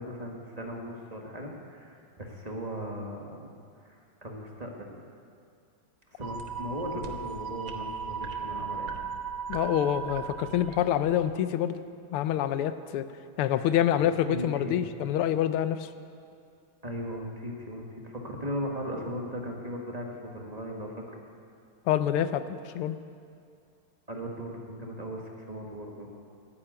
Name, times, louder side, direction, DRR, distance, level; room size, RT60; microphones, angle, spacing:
voice 1, 0.0-3.5 3.8-5.0 6.1-9.1 13.4-14.8 16.8-21.2 24.1-26.1, equal, 20° right, 0 dB, 1.3 m, -38 dB
sound 1, 6.2-11.2, right 6 dB, 70° right, 1.7 m, -37 dB
voice 2, 9.5-11.8 12.1-13.1 13.4-15.9 21.9-23.0, left 11 dB, 85° left, 12 dB, 1.5 m, -26 dB
12.0 x 10.0 x 8.8 m, 2.4 s
omnidirectional pair, 2.4 m